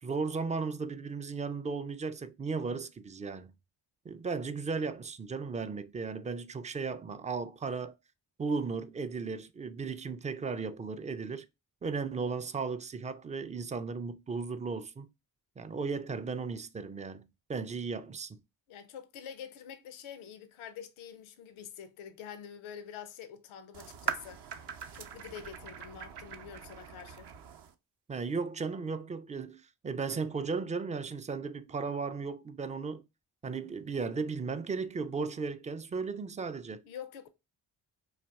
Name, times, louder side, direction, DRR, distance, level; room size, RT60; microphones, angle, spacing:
voice 1, 0.0-3.5 4.1-8.0 8.4-11.5 11.8-15.1 15.6-18.4 28.1-33.0 33.4-36.8, right 4 dB, 15° right, 0.3 m, -35 dB
voice 2, 18.7-27.3 36.8-37.3, left 8 dB, 75° left, 0.7 m, -46 dB
sound 1, 23.7-27.7, right 7 dB, 55° right, 0.6 m, -41 dB
4.1 x 2.5 x 2.3 m
supercardioid pair, 40°, 49 cm